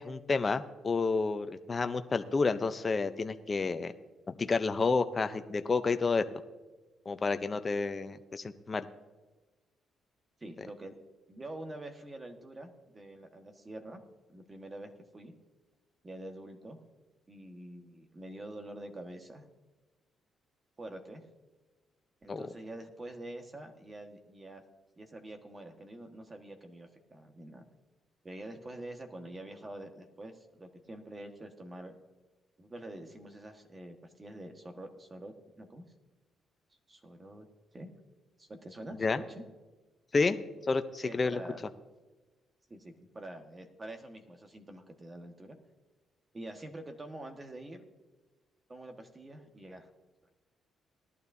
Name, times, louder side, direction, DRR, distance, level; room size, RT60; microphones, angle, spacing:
voice 1, 0.0-3.9 4.3-6.2 7.1-8.8 22.3-22.4 39.0-39.2 40.1-40.4 40.7-41.4, left 4 dB, 30° left, 9 dB, 0.6 m, -30 dB
voice 2, 10.4-10.9 11.3-14.0 14.3-15.3 16.0-16.8 17.3-19.4 20.8-21.2 22.2-24.6 25.0-27.6 28.2-31.9 32.6-35.8 36.9-37.5 37.7-37.9 38.4-39.4 41.0-41.6 42.7-45.6 46.3-47.8 48.7-49.9, right 1 dB, 25° right, 5 dB, 1.5 m, -46 dB
19.0 x 11.5 x 2.7 m, 1.2 s
cardioid pair, 90°, 0 cm